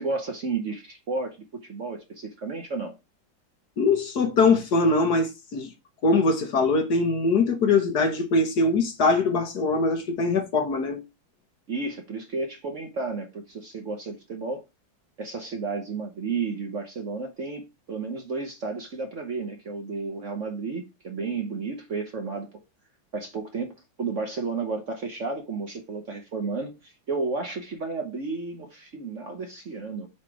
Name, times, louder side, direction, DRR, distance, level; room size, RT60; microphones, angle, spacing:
voice 1, 0.0-3.0 11.7-14.7 15.2-22.5 23.1-30.1, right 4 dB, 45° right, 1.1 m, -32 dB
voice 2, 3.8-5.7 6.0-11.0, left 3 dB, 55° left, 1.6 m, -22 dB
7.6 x 3.4 x 4.7 m
omnidirectional pair, 2.1 m